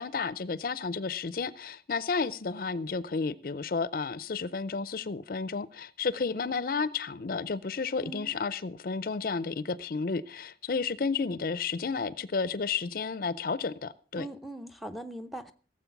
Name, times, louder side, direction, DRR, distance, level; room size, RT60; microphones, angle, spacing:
voice 1, 0.0-14.3, left 4 dB, 55° left, 0.5 m, -32 dB
voice 2, 8.0-8.4 14.2-15.5, right 1 dB, ahead, 0.6 m, -40 dB
16.0 x 7.7 x 5.8 m
head